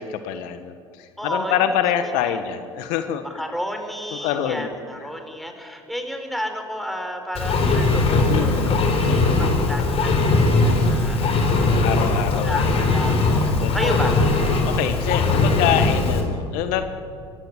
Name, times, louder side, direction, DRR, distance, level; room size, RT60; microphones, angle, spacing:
voice 1, 0.0-3.2 4.1-4.7 5.0-5.1 8.3-9.3 11.7-12.7 13.6-13.9 14.7-16.9, left 9 dB, 65° left, 9 dB, 1.4 m, -26 dB
voice 2, 1.2-1.6 2.2-2.4 3.2-11.9 12.4-14.1, equal, ahead, 5 dB, 4.3 m, -32 dB
Engine, 7.3-16.2, left 3 dB, 45° left, 4.6 m, -20 dB
25.0 x 15.0 x 9.8 m, 2.3 s
hypercardioid pair, 75°, 14 cm